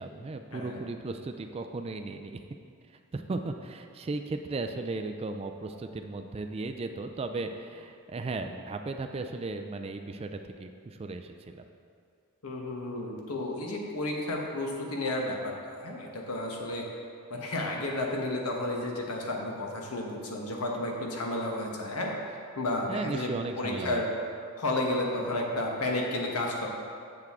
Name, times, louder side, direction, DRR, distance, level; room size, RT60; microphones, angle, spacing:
voice 1, 0.0-2.4 3.1-11.6 22.9-24.0, right 3 dB, 25° right, 6 dB, 0.3 m, -36 dB
voice 2, 12.4-16.8 17.3-22.1 22.6-23.3 23.6-24.1 24.6-26.7, left 1 dB, 80° left, 0 dB, 1.1 m, -32 dB
7.7 x 6.7 x 3.6 m, 2.3 s
head